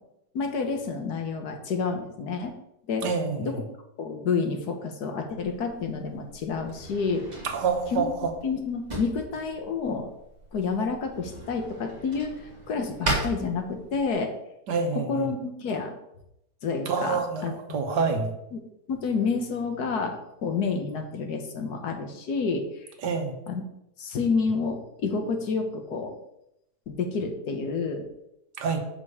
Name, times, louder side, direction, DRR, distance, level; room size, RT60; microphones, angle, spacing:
voice 1, 0.3-2.5 2.9-3.1 3.4-3.6 4.0-7.2 7.9-8.1 8.4-10.1 10.5-14.3 14.9-15.9 16.6-17.5 17.9-18.0 18.5-18.6 18.9-22.6 23.5-23.6 24.0-26.2 26.9-28.1, left 4 dB, 70° left, 5 dB, 1.6 m, -29 dB
voice 2, 3.0-3.6 7.4-8.3 14.7-15.3 16.9-18.3 23.0-23.3 28.6-28.8, right 5 dB, 75° right, 4 dB, 1.7 m, -27 dB
Drawer open or close, 5.4-14.2, right 1 dB, 25° right, 2.5 m, -37 dB
6.0 x 5.2 x 6.7 m, 0.83 s
omnidirectional pair, 1.8 m